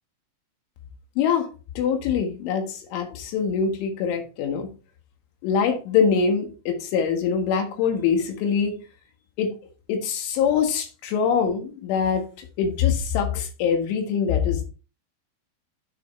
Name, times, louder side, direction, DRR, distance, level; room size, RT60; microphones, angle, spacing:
voice 1, 1.2-1.5 1.8-4.7 5.4-8.8 9.4-9.5 9.9-12.2 12.6-14.6, left 6 dB, 75° left, 4 dB, 4.0 m, -23 dB
8.7 x 8.2 x 3.3 m, 0.34 s
omnidirectional pair, 5.8 m